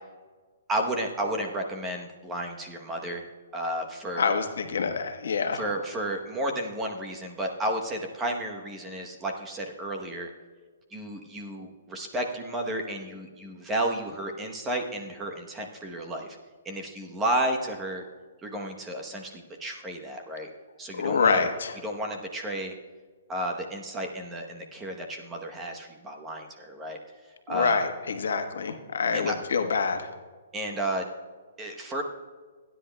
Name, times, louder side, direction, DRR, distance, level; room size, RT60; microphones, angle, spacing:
voice 1, 0.7-3.3 3.5-4.4 5.5-10.3 10.9-16.4 16.6-18.0 18.4-20.5 20.8-21.5 21.8-22.7 23.3-27.0 27.5-27.8 29.1-29.4 30.5-31.1 31.6-32.0, right 1 dB, 10° right, 2 dB, 0.8 m, -32 dB
voice 2, 4.2-5.6 20.9-21.7 27.5-30.1, left 5 dB, 80° left, 6 dB, 1.1 m, -26 dB
26.5 x 10.0 x 2.2 m, 1.4 s
hypercardioid pair, 165°, 0 cm